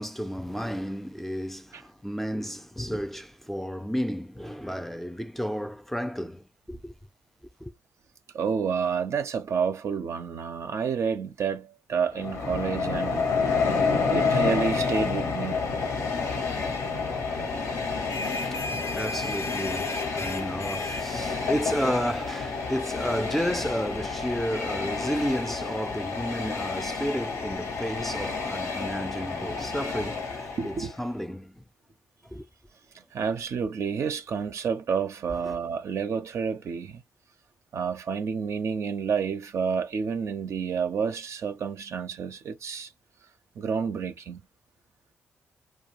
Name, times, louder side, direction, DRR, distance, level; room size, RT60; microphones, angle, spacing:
voice 1, 0.0-6.9 7.6-7.7 17.9-31.6 32.2-32.5 35.4-35.5, equal, 5° left, 0.4 m, -32 dB
voice 2, 8.3-13.3 14.1-15.6 30.6-30.9 33.1-37.0 37.7-42.9 43.6-44.4, right 6 dB, 60° right, 0.4 m, -29 dB
Train, 12.1-31.0, left 4 dB, 80° left, 0.8 m, -29 dB
sound 1, 17.8-29.2, left 2 dB, 55° left, 0.5 m, -41 dB
2.3 x 2.2 x 2.9 m
hypercardioid pair, 40°, 5 cm